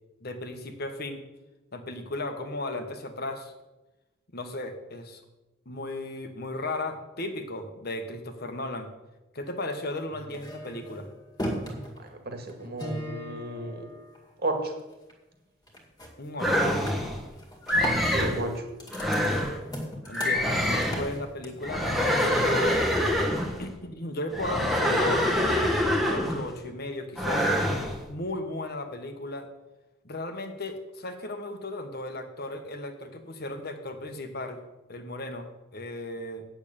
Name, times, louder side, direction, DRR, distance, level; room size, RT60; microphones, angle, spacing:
voice 1, 0.2-1.2 1.7-3.5 4.3-5.2 5.6-8.9 9.3-11.1 16.2-16.6 20.1-23.2 23.6-27.5 28.1-29.5 30.0-34.6 34.9-36.5, left 2 dB, 50° left, 7 dB, 1.3 m, -35 dB
sound 1, 10.1-14.6 14.9-15.3 15.7-16.1 16.4-21.7, equal, 20° left, 2.1 m, -38 dB
voice 2, 12.3-13.7 14.4-14.7 18.1-18.5, right 2 dB, 50° right, 4 dB, 2.0 m, -32 dB
sound 2, 16.4-17.2 17.7-18.4 18.9-19.6 20.1-21.1 21.6-23.6 24.3-26.5 27.2-28.0, equal, ahead, 1.4 m, -25 dB
8.8 x 6.9 x 8.7 m, 1.0 s
head